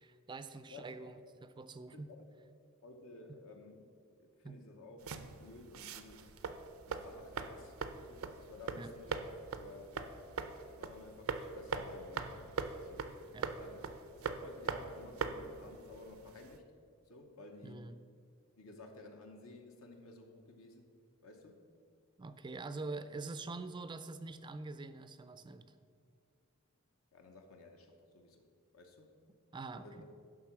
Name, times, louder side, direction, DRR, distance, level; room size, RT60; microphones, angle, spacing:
voice 1, 0.0-2.1 4.4-4.6 8.8-8.9 13.3-13.5 17.6-17.9 22.2-25.7 29.5-30.1, right 3 dB, 20° right, 11 dB, 0.3 m, -45 dB
voice 2, 2.8-6.3 6.9-10.1 10.6-12.5 12.8-13.2 13.5-16.6 17.1-18.0 18.6-20.9 21.2-21.6 27.1-28.5 28.7-29.2 29.8-30.1, left 2 dB, 75° left, 3 dB, 0.9 m, -54 dB
sound 1, 5.0-16.6, right 4 dB, 85° right, 0.6 m, -42 dB
11.5 x 3.8 x 6.0 m, 2.2 s
head